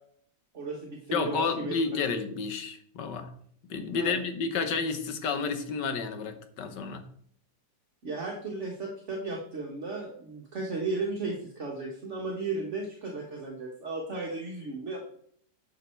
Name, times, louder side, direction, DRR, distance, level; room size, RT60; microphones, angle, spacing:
voice 1, 0.5-1.8 4.0-4.2 8.0-15.0, right 3 dB, 45° right, 0 dB, 1.7 m, -35 dB
voice 2, 1.1-3.3 3.6-7.0, left 5 dB, 80° left, 8 dB, 1.7 m, -31 dB
11.0 x 5.7 x 4.5 m, 0.63 s
omnidirectional pair, 1.9 m